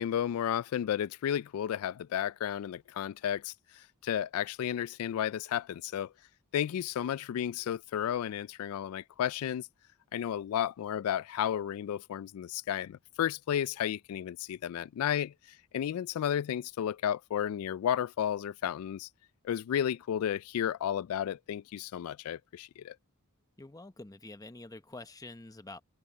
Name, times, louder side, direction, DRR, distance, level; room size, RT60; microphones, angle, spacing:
voice 1, 0.0-6.1 6.5-9.7 10.1-19.1 19.4-23.0, left 9 dB, 70° left, 0.3 m, -33 dB
voice 2, 23.6-25.8, left 2 dB, 15° left, 0.8 m, -47 dB
head